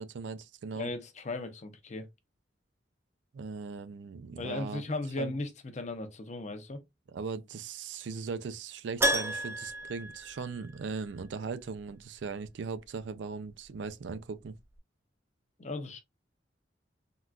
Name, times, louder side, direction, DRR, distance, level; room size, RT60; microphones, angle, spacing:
voice 1, 0.0-0.9 3.3-4.8 5.2-5.3 7.1-14.6, right 5 dB, 75° right, 0.4 m, -39 dB
voice 2, 0.7-2.1 4.4-6.8 15.6-16.0, left 2 dB, 40° left, 0.6 m, -37 dB
Keyboard (musical), 9.0-11.1 11.3-11.4 14.1-14.2 14.4-14.5, right 1 dB, 15° right, 0.5 m, -32 dB
3.7 x 2.3 x 2.3 m
head